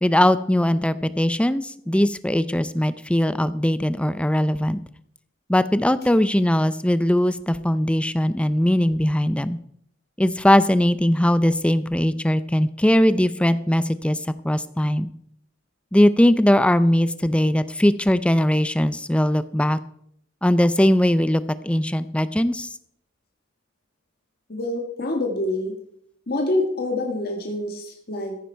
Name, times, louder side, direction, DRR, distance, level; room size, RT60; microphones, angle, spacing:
voice 1, 0.0-4.8 5.5-9.6 10.2-14.2 14.4-15.1 15.9-19.8 20.4-22.7, left 1 dB, 5° left, 14 dB, 0.5 m, -20 dB
voice 2, 24.5-25.7 26.3-28.4, left 2 dB, 55° left, 2 dB, 1.7 m, -26 dB
14.5 x 9.8 x 4.5 m, 0.71 s
head